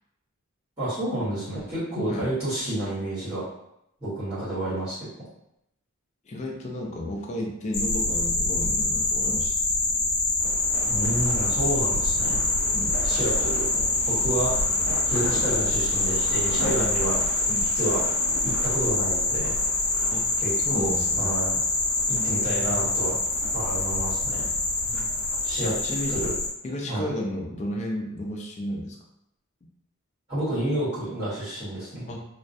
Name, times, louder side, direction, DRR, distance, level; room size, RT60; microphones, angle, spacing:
voice 1, 0.8-3.4 4.0-5.1 10.8-12.4 13.0-13.6 14.1-14.5 15.0-17.4 17.7-18.0 18.4-19.6 20.4-20.9 21.2-21.6 22.1-23.2 23.5-24.4 25.4-25.8 26.1-26.3 26.9-27.1 30.3-32.0, right 1 dB, 20° right, -13 dB, 1.2 m, -29 dB
voice 2, 6.3-9.6 12.7-13.0 17.5-17.7 20.1-20.3 20.6-21.3 22.1-22.9 24.8-25.1 25.6-26.3 26.6-29.0 32.1-32.3, equal, 30° left, 0 dB, 0.4 m, -33 dB
sound 1, 7.7-26.5, left 2 dB, 85° left, 0.6 m, -25 dB
sound 2, 10.4-25.6, right 2 dB, 75° right, 0.4 m, -40 dB
2.3 x 2.1 x 2.6 m, 0.80 s
head